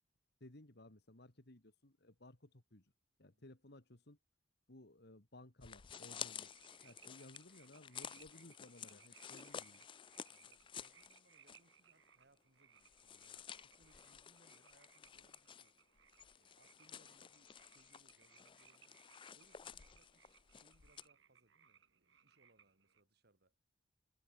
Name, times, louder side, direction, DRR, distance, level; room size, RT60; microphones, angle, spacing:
voice 1, 0.4-2.9 3.2-4.2 4.7-6.5 6.8-9.9, left 1 dB, 60° left, 2.5 m, -59 dB
voice 2, 3.2-3.5 10.3-15.7 16.3-19.0 19.3-23.5, right 1 dB, 55° right, 3.5 m, -74 dB
sound 1, 5.6-11.7 12.0-12.1 12.8-21.1, left 8 dB, 25° left, 0.4 m, -53 dB
sound 2, 6.3-23.0, right 8 dB, 75° right, 3.2 m, -68 dB
head